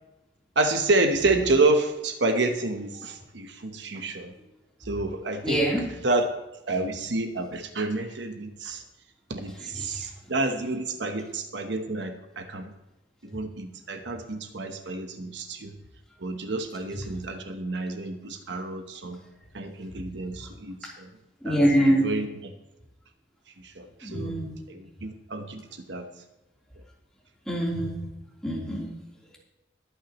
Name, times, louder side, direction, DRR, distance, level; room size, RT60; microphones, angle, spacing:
voice 1, 0.6-4.3 4.8-6.3 6.7-8.8 9.3-12.7 13.2-15.7 16.2-19.2 19.5-21.1 21.4-22.5 23.6-24.4 24.7-25.6 25.9-26.1, right 2 dB, 70° right, 6 dB, 1.1 m, -29 dB
voice 2, 5.4-5.8 21.4-22.0 24.0-24.5 27.5-28.0 28.4-28.9, right 1 dB, 5° left, -5 dB, 3.5 m, -23 dB
21.5 x 9.2 x 3.1 m, 0.99 s
head